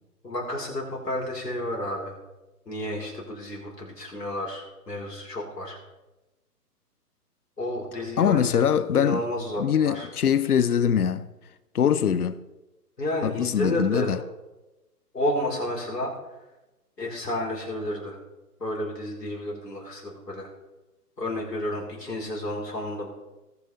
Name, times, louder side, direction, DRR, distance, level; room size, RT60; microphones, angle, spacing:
voice 1, 0.2-2.2 2.7-5.8 7.6-8.6 8.9-10.1 13.0-14.1 15.1-16.1 17.0-18.2 18.6-20.5 21.2-23.1, left 1 dB, 85° left, 4.3 m, -31 dB
voice 2, 8.2-9.2 9.6-11.3 11.7-12.4 13.2-14.2, left 8 dB, 70° left, 0.9 m, -22 dB
19.5 x 7.0 x 4.1 m
figure-of-eight pair, 135°, 47 cm